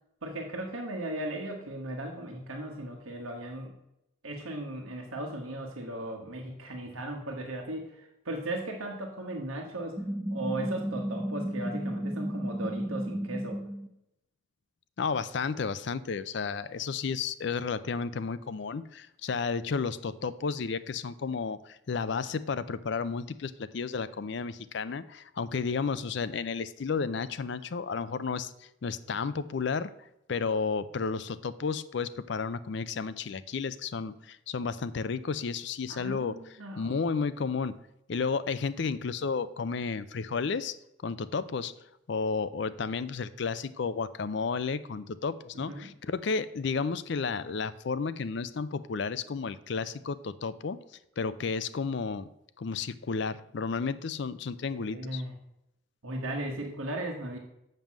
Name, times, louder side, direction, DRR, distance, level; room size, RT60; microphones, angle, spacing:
voice 1, 0.2-3.7 4.2-10.0 10.3-13.6 35.9-36.9 45.7-45.9 54.7-55.3 56.0-57.4, right 1 dB, 85° right, 1 dB, 1.3 m, -37 dB
sound 1, 10.0-13.9, right 1 dB, 15° right, 0.6 m, -33 dB
voice 2, 15.0-29.9 30.3-36.4 36.8-37.7 38.1-40.7 41.0-41.7 42.1-50.8 51.2-52.3 52.6-55.2, left 5 dB, 55° left, 14 dB, 0.4 m, -32 dB
7.5 x 5.4 x 7.4 m, 0.83 s
head